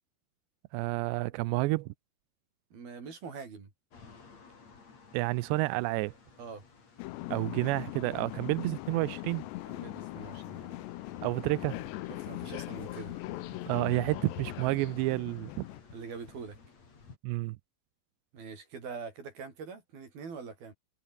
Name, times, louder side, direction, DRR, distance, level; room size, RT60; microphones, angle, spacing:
voice 1, 0.7-1.9 5.1-6.1 7.3-9.4 11.2-11.8 13.7-15.6 17.2-17.6, right 21 dB, 85° right, 2.6 m, -30 dB
voice 2, 2.7-3.7 6.4-6.6 9.7-10.8 12.1-13.2 15.9-16.6 18.3-20.7, right 5 dB, 50° right, 7.3 m, -44 dB
sound 1, 3.9-17.2, left 4 dB, 35° left, 5.5 m, -51 dB
sound 2, 7.0-15.8, left 19 dB, 80° left, 2.6 m, -41 dB
omnidirectional pair, 5.6 m